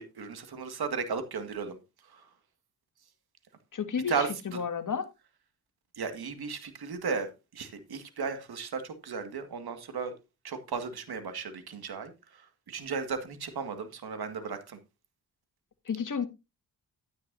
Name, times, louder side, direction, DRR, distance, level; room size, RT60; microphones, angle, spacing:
voice 1, 0.0-2.3 4.1-4.6 5.9-10.1 10.4-14.8, right 5 dB, 55° right, 2.0 m, -35 dB
voice 2, 3.7-4.1 4.6-5.0 15.9-16.3, left 6 dB, 45° left, 1.9 m, -31 dB
12.0 x 9.7 x 2.7 m
hypercardioid pair, 40°, 45 cm